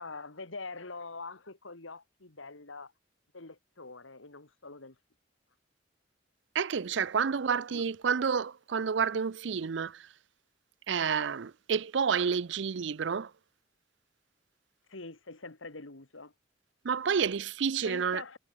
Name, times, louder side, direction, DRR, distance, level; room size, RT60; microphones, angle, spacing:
voice 1, 0.0-2.9 3.3-5.0 7.7-7.9 14.9-16.3 17.8-18.4, left 3 dB, 80° left, 2.3 m, -44 dB
voice 2, 6.5-10.1 10.9-13.3 16.8-18.2, right 6 dB, 65° right, 0.5 m, -29 dB
head